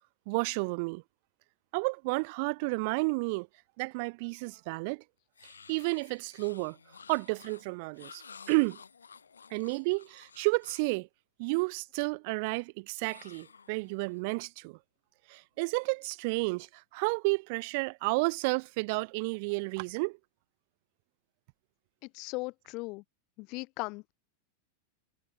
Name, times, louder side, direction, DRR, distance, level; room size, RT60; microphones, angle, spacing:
voice 1, 0.3-1.0 1.7-3.5 3.8-5.0 5.7-6.8 7.1-8.8 9.5-11.1 11.4-14.8 15.3-20.2, right 29 dB, 45° right, 4.0 m, -31 dB
sound 1, 5.3-11.0 13.0-14.2, left 6 dB, 70° left, 7.5 m, -53 dB
voice 2, 22.1-23.0 23.4-24.1, left 26 dB, 40° left, 1.2 m, -38 dB
figure-of-eight pair, 90°, 0 cm